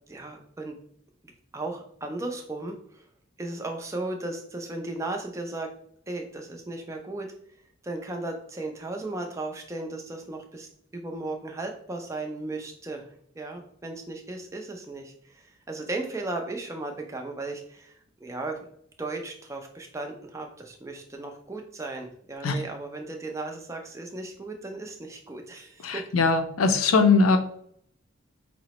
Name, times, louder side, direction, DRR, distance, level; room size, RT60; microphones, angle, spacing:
voice 1, 0.1-0.8 1.5-3.0 3.4-5.7 6.1-7.3 7.8-13.1 13.3-18.0 18.2-18.6 19.0-26.0, right 2 dB, 15° right, 3 dB, 0.4 m, -36 dB
voice 2, 25.8-27.4, left 4 dB, 85° left, 7 dB, 0.5 m, -21 dB
4.8 x 2.0 x 2.9 m, 0.66 s
head